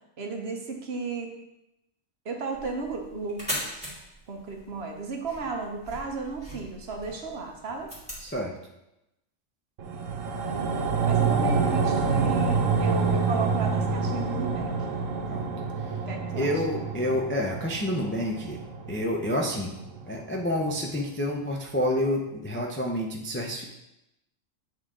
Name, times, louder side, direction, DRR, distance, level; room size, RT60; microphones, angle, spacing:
voice 1, 0.2-1.3 2.2-3.9 4.3-7.9 11.1-14.7 16.1-16.5, right 4 dB, 55° right, 2 dB, 1.0 m, -34 dB
sound 1, 2.5-8.3, equal, 5° right, 2.5 m, -40 dB
voice 2, 8.2-8.5 15.3-15.5 15.8-16.0 16.3-18.6 18.9-19.7 20.1-23.6, left 1 dB, 15° left, 0 dB, 0.4 m, -28 dB
sound 2, 9.8-20.4 20.8-20.9, right 4 dB, 90° right, 1.2 m, -27 dB
9.0 x 3.8 x 3.7 m, 0.90 s
omnidirectional pair, 1.3 m